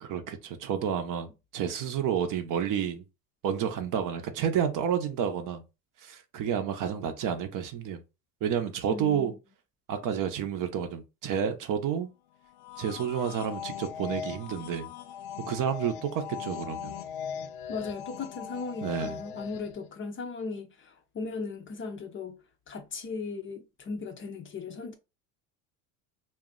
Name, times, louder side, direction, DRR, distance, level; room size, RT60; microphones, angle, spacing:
voice 1, 0.0-1.3 1.5-3.0 3.4-5.6 6.0-8.0 8.4-9.3 9.9-12.1 12.8-14.9 15.5-17.0 18.8-19.2, right 8 dB, 45° right, 0.7 m, -30 dB
voice 2, 8.9-9.4 17.7-22.4 22.7-25.0, left 4 dB, 30° left, 0.5 m, -37 dB
sound 1, 12.5-19.9, left 8 dB, 80° left, 0.6 m, -39 dB
2.4 x 2.0 x 3.7 m
supercardioid pair, 95°, 43 cm